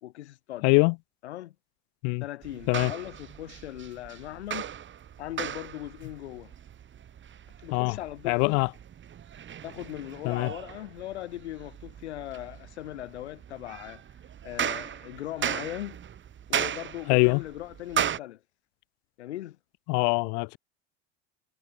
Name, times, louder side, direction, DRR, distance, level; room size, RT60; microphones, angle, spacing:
voice 1, 0.0-0.7 1.2-1.5 2.2-4.7 5.2-6.5 7.6-8.6 9.6-14.0 14.4-16.0 16.5-18.4 19.2-19.6, left 14 dB, 75° left, 2.1 m, -39 dB
voice 2, 0.6-0.9 2.0-2.2 2.7-2.9 7.7-8.0 8.3-8.7 10.2-10.5 17.1-17.4 19.9-20.6, left 40 dB or more, 55° left, 0.5 m, -23 dB
sound 1, 2.4-18.2, right 9 dB, 35° right, 3.3 m, -37 dB
hypercardioid pair, 75°, 34 cm